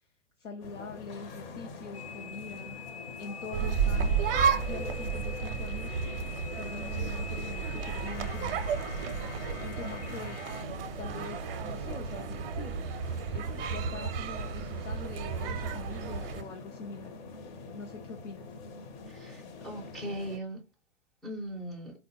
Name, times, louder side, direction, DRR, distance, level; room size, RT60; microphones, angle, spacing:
voice 1, 0.4-2.8 3.2-4.2 4.7-6.0 6.6-8.7 9.6-10.4 10.8-12.7 13.3-17.2 17.7-18.5, left 4 dB, 85° left, 0.6 m, -44 dB
sound 1, 0.6-20.4, left 4 dB, 40° left, 0.6 m, -44 dB
sound 2, 1.9-10.6, left 6 dB, 65° left, 0.9 m, -45 dB
sound 3, 3.5-16.4, right 6 dB, 55° right, 0.5 m, -32 dB
voice 2, 19.1-20.6 21.2-21.9, right 1 dB, ahead, 0.3 m, -39 dB
3.4 x 2.1 x 2.7 m
hypercardioid pair, 110°, 35 cm